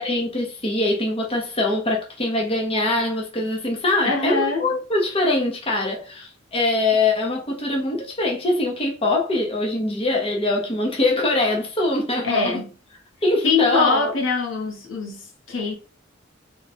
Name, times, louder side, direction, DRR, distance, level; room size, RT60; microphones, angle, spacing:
voice 1, 0.0-12.6 13.2-14.1, left 2 dB, 30° left, 0.9 m, -23 dB
voice 2, 4.0-4.7 12.2-12.7 13.4-15.8, left 4 dB, 80° left, 1.3 m, -23 dB
3.6 x 2.4 x 4.2 m
head